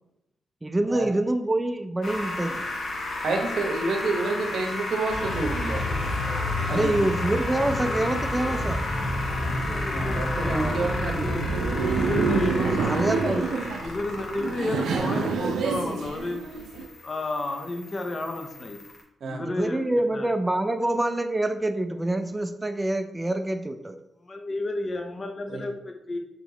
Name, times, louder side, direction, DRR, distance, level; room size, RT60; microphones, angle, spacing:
voice 1, 0.6-2.7 6.7-8.8 12.8-13.6 19.4-24.0, right 1 dB, 15° right, 8 dB, 0.4 m, -26 dB
sound 1, 2.0-19.0, left 2 dB, 60° left, 1.2 m, -33 dB
voice 2, 3.2-5.8 6.7-7.1 9.9-11.6 19.2-19.4 25.5-25.6, right 3 dB, 70° right, 3 dB, 0.8 m, -29 dB
sound 2, 5.1-12.5, left 1 dB, 75° left, 0.8 m, -30 dB
voice 3, 9.6-11.4 12.0-16.4 17.0-18.8 19.3-20.3 24.2-26.2, left 2 dB, 35° left, 4 dB, 0.7 m, -32 dB
Laughter, 10.6-16.9, right 5 dB, 90° right, 0.4 m, -28 dB
4.5 x 2.9 x 3.9 m, 0.84 s
cardioid pair, 80°, 0 cm